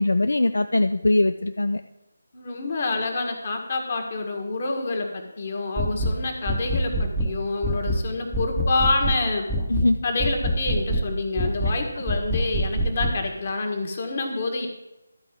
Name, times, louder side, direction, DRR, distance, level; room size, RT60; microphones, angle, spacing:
voice 1, 0.0-1.8 9.7-10.0, left 2 dB, 65° left, 9 dB, 0.4 m, -21 dB
voice 2, 2.3-9.5 10.0-14.7, left 3 dB, 40° left, 3 dB, 1.7 m, -27 dB
sound 1, 5.8-6.2 6.5-7.3 7.6-8.0 8.3-9.2 9.5-9.9 10.2-11.1 11.4-11.8 12.1-13.2, equal, 5° left, 0.8 m, -25 dB
12.5 x 4.8 x 7.7 m, 0.96 s
figure-of-eight pair, 155°, 0 cm